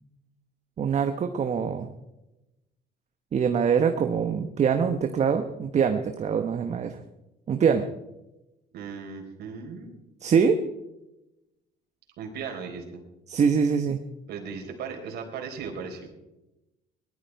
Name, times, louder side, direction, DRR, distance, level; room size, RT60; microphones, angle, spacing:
voice 1, 0.8-1.9 3.3-7.0 7.5-7.9 10.2-10.6 13.3-14.0, right 6 dB, 40° right, 6 dB, 1.1 m, -24 dB
voice 2, 8.7-9.9 12.2-13.0 14.3-16.1, right 5 dB, 75° right, 2 dB, 4.2 m, -37 dB
20.0 x 13.0 x 4.7 m, 0.94 s
cardioid pair, 110°, 17 cm